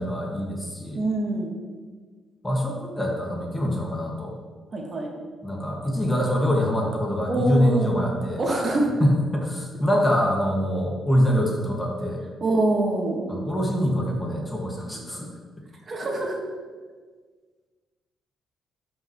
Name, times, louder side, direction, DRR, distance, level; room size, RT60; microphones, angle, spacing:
voice 1, 0.0-1.0 2.4-4.3 5.4-8.4 9.0-12.2 13.3-15.3, equal, 15° left, -1 dB, 1.8 m, -24 dB
voice 2, 0.9-1.5 4.7-5.1 7.3-7.9 8.4-8.9 12.4-13.2 14.9-15.0 15.9-16.4, right 2 dB, 40° right, 0 dB, 1.5 m, -24 dB
12.5 x 5.8 x 3.1 m, 1.5 s
cardioid pair, 90°, 0 cm